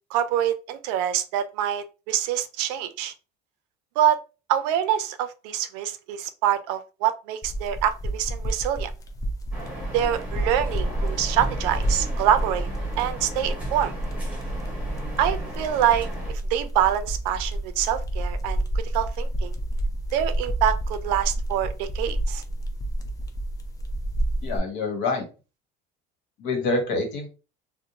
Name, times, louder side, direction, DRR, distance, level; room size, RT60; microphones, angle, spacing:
voice 1, 0.1-3.1 4.0-4.2 4.5-8.9 9.9-12.7 13.0-13.9 15.2-19.5 20.1-22.4, right 10 dB, 90° right, 0.5 m, -25 dB
sound 1, 7.4-24.6, right 1 dB, 20° left, 0.4 m, -29 dB
sound 2, 9.5-16.3, equal, 5° right, 0.9 m, -37 dB
voice 2, 24.4-25.2 26.4-27.3, left 3 dB, 70° left, 1.1 m, -26 dB
2.6 x 2.1 x 2.8 m
cardioid pair, 125°, 20 cm